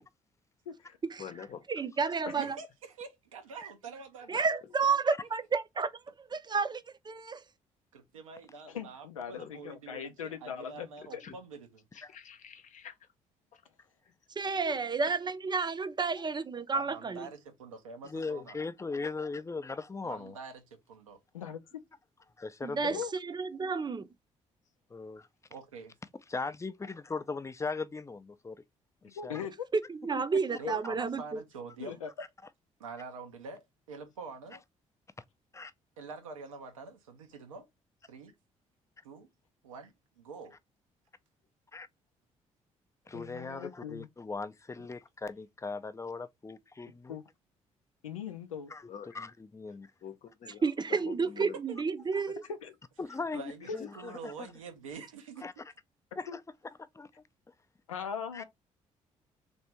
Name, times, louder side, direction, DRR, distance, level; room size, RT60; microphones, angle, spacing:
voice 1, 0.7-1.0 2.3-2.4 8.7-10.9 11.1-11.2 14.7-14.8 21.3-21.6 22.8-23.1 29.0-29.5 30.6-30.8 31.8-32.1 43.1-44.1 47.1-47.2 48.0-48.7 52.6-52.7 53.7-53.9 56.3-56.4 57.9-58.4, left 7 dB, 85° left, 0.5 m, -40 dB
voice 2, 1.2-1.6 9.3-9.5 11.2-11.3 11.9-13.1 13.5-13.6 48.9-49.1 50.0-51.6 52.3-52.4 53.6-53.9, left 8 dB, 50° left, 0.8 m, -46 dB
voice 3, 1.7-2.6 4.3-5.9 6.2-7.4 14.4-17.3 22.6-24.1 29.9-31.4 50.6-52.4, right 4 dB, 25° right, 0.6 m, -31 dB
voice 4, 2.3-4.5 7.9-11.8 16.7-18.6 20.0-20.6 20.9-21.2 25.5-25.9 30.6-32.0 32.8-34.6 36.0-37.7 38.1-38.3 39.0-39.3 39.6-40.5 51.7-51.8 53.3-55.5, right 4 dB, 85° right, 0.7 m, -46 dB
voice 5, 18.0-20.4 22.4-23.0 24.9-25.3 26.3-28.6 29.0-29.5 30.1-30.2 30.7-30.8 35.5-35.7 41.7-41.9 43.1-47.2 48.7-48.9 49.1-49.9 53.0-54.5 55.4-55.5 56.2-56.4 56.9-57.1 58.3-58.4, left 4 dB, 20° left, 0.5 m, -39 dB
3.4 x 2.6 x 4.3 m
figure-of-eight pair, 45°, 17 cm